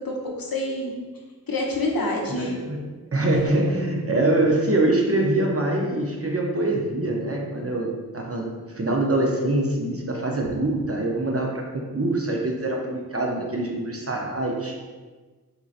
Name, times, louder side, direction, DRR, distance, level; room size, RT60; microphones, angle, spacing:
voice 1, 0.0-0.9 1.5-2.5 3.3-3.4 7.9-8.0, left 1 dB, 60° left, -1 dB, 0.7 m, -27 dB
voice 2, 2.3-2.8 3.1-14.7, right 2 dB, 40° right, -1 dB, 0.6 m, -24 dB
4.3 x 2.6 x 2.4 m, 1.3 s
wide cardioid pair, 40°, 39 cm